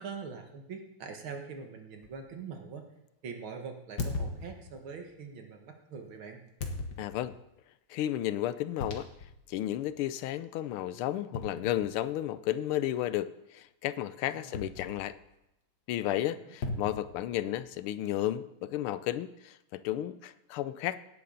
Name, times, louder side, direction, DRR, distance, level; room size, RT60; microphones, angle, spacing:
voice 1, 0.0-2.9 3.2-6.5 14.3-14.7 16.1-16.6, right 5 dB, 70° right, 4 dB, 2.3 m, -43 dB
sound 1, 2.0-2.2 4.0-5.0 6.6-7.4 8.8-9.5 9.9-10.0 11.3-12.3 14.5-15.3 16.6-17.7, left 3 dB, 50° left, 1.8 m, -38 dB
voice 2, 7.0-7.3 7.9-9.1 9.5-15.2 15.9-21.0, left 13 dB, 80° left, 15 dB, 1.5 m, -33 dB
17.5 x 10.0 x 3.9 m, 0.88 s
omnidirectional pair, 2.4 m